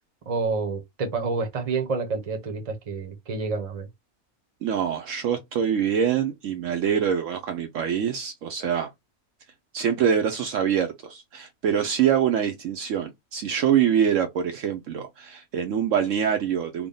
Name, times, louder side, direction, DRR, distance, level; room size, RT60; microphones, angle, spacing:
voice 1, 0.3-3.9, right 4 dB, 30° right, 0.8 m, -28 dB
voice 2, 4.6-8.9 9.7-16.9, right 8 dB, 65° right, 0.9 m, -24 dB
3.5 x 2.2 x 3.7 m
omnidirectional pair, 1.5 m